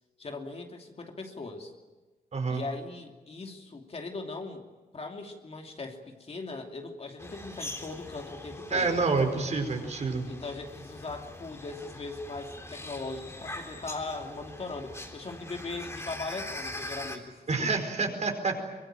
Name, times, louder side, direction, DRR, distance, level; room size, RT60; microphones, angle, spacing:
voice 1, 0.2-1.7 2.5-4.6 4.9-9.0 10.3-17.8, left 3 dB, 40° left, 3 dB, 2.7 m, -39 dB
voice 2, 2.3-2.6 8.7-10.3 17.5-18.6, right 4 dB, 50° right, 5 dB, 4.8 m, -28 dB
sound 1, 7.2-17.2, left 1 dB, 20° left, 3.6 m, -43 dB
24.0 x 23.5 x 9.1 m, 1.2 s
wide cardioid pair, 135°, 15 cm